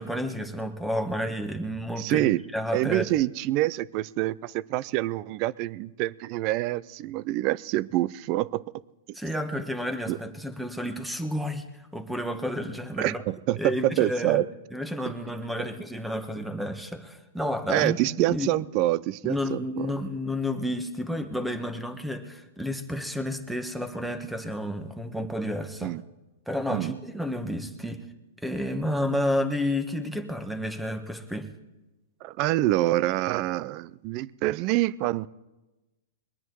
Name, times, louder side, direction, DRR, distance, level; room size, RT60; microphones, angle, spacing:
voice 1, 0.0-3.1 9.1-11.6 11.9-13.2 13.6-14.4 14.7-18.0 18.3-18.5 19.2-26.0 26.5-28.0 28.4-31.5, left 1 dB, ahead, 8 dB, 1.3 m, -31 dB
voice 2, 2.0-2.4 2.7-8.6 10.1-10.2 13.0-14.5 15.1-15.2 17.7-19.9 25.8-26.0 26.7-27.0 32.2-35.3, right 16 dB, 40° right, 21 dB, 0.5 m, -26 dB
22.0 x 9.9 x 4.7 m, 1.1 s
hypercardioid pair, 130°, 0 cm